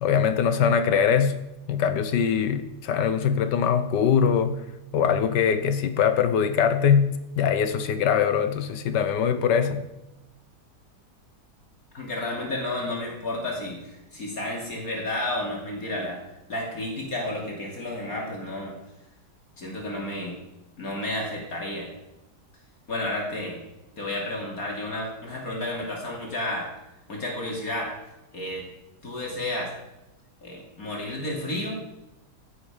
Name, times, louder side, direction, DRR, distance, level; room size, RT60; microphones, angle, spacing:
voice 1, 0.0-1.4 1.7-4.6 4.9-9.9, left 7 dB, 80° left, 11 dB, 1.6 m, -22 dB
voice 2, 11.9-16.2 16.5-18.8 19.6-20.4 20.8-21.9 22.9-23.6 24.0-26.7 27.1-27.9 28.3-28.6 29.0-29.7 30.4-31.8, left 1 dB, 55° left, -2 dB, 3.2 m, -31 dB
15.5 x 8.2 x 5.1 m, 0.96 s
omnidirectional pair, 1.8 m